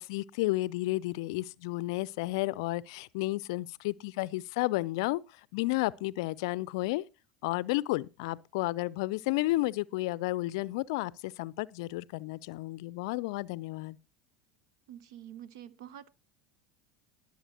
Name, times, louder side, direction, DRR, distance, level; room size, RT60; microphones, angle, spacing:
voice 1, 0.0-7.0 7.4-14.0, left 19 dB, 65° left, 0.4 m, -32 dB
voice 2, 14.9-16.1, right 10 dB, 70° right, 0.8 m, -47 dB
20.0 x 7.1 x 2.9 m
hypercardioid pair, 80°, 3 cm